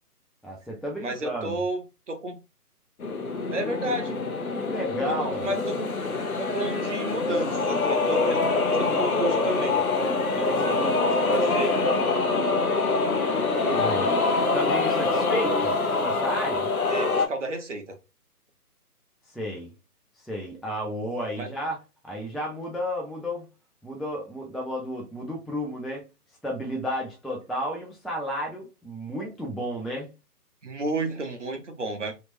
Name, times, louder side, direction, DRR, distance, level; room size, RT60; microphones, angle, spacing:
voice 1, 0.4-1.5 4.6-5.5 13.7-14.2 14.5-15.7 16.0-16.7 19.3-19.7 20.2-21.8 22.0-23.5 23.8-26.1 26.4-30.1, equal, ahead, 0.3 m, -32 dB
voice 2, 1.0-2.4 3.5-4.2 5.1-5.9 6.3-8.4 8.7-9.8 10.3-11.7 16.9-17.9 21.4-21.5 30.6-32.1, right 2 dB, 50° right, 0.8 m, -32 dB
sound 1, 3.0-17.3, left 3 dB, 65° left, 0.7 m, -25 dB
2.9 x 2.0 x 2.6 m
figure-of-eight pair, 160°, 46 cm